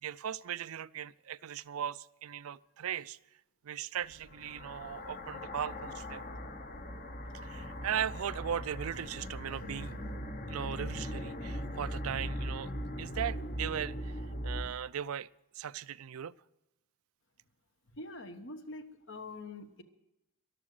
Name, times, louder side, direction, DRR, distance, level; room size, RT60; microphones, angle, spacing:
voice 1, 0.0-3.2 3.6-6.2 7.4-10.0 10.5-12.7 13.0-15.3 15.5-16.3, right 9 dB, 90° right, 0.4 m, -38 dB
sound 1, 4.1-14.6, equal, 40° left, 1.0 m, -40 dB
voice 2, 17.9-19.8, left 2 dB, 60° left, 1.3 m, -45 dB
13.5 x 12.0 x 6.5 m
head